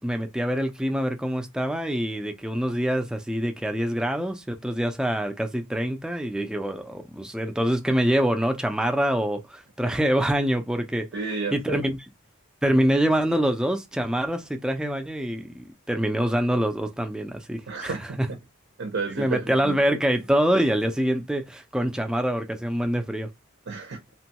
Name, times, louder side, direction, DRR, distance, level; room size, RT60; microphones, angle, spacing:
voice 1, 0.0-11.1 11.5-12.0 12.6-18.3 19.2-23.3, equal, 5° right, 0.4 m, -25 dB
voice 2, 11.1-11.8 17.7-18.4 18.8-20.0 23.7-24.0, right 4 dB, 55° right, 0.6 m, -32 dB
3.0 x 2.2 x 2.8 m
head